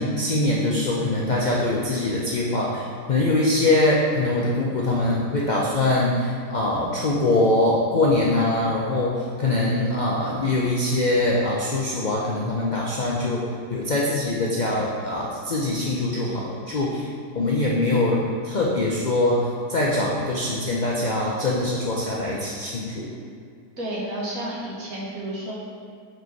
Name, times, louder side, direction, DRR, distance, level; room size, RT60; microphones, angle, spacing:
voice 1, 0.0-13.4 13.7-17.1 17.3-23.1, left 2 dB, 90° left, -4 dB, 0.4 m, -23 dB
voice 2, 23.8-25.5, right 1 dB, 60° right, -5 dB, 1.6 m, -31 dB
5.0 x 4.5 x 4.6 m, 2.3 s
omnidirectional pair, 1.7 m